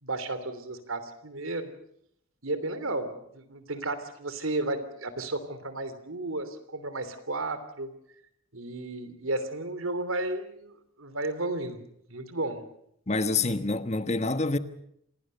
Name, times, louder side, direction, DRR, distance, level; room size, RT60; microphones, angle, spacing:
voice 1, 0.0-1.7 2.4-7.9 8.5-12.6, right 2 dB, 80° right, 3.1 m, -33 dB
voice 2, 13.1-14.6, left 3 dB, 30° left, 1.2 m, -27 dB
27.0 x 19.0 x 6.8 m
head